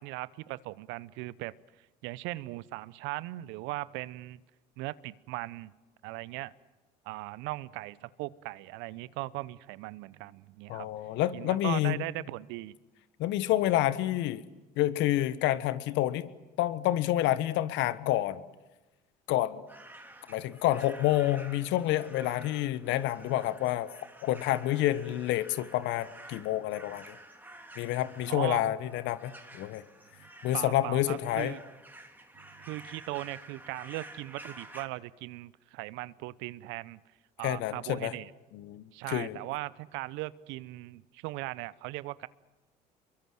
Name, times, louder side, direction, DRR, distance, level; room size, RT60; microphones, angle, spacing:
voice 1, 0.0-1.5 2.0-4.4 4.8-5.7 6.0-6.5 7.1-10.9 11.3-12.7 28.3-28.6 30.5-31.6 32.6-37.0 37.4-38.3 38.9-42.3, right 19 dB, 65° right, 19 dB, 0.9 m, -38 dB
voice 2, 10.7-12.0 13.2-14.4 14.8-16.3 16.6-18.4 19.3-19.6 20.3-24.0 24.2-27.2 27.8-29.8 30.4-31.5 37.4-38.1 38.5-39.4, left 14 dB, 65° left, 14 dB, 1.5 m, -28 dB
sound 1, 19.7-34.9, right 1 dB, 10° right, 3.9 m, -51 dB
28.5 x 23.5 x 7.8 m, 1.1 s
hypercardioid pair, 60°, 20 cm